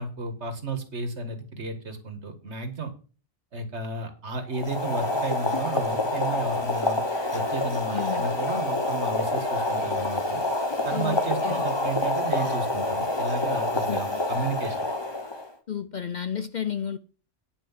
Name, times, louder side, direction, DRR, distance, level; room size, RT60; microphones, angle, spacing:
voice 1, 0.0-2.9 3.5-7.0 7.3-10.4 10.8-14.8, right 3 dB, 70° right, 2.1 m, -33 dB
Boiling, 4.5-15.5, left 2 dB, 20° left, 1.4 m, -27 dB
voice 2, 7.9-8.3 10.9-11.6 13.9-14.2 15.7-17.0, left 8 dB, 50° left, 0.6 m, -32 dB
9.7 x 6.0 x 7.2 m
omnidirectional pair, 1.2 m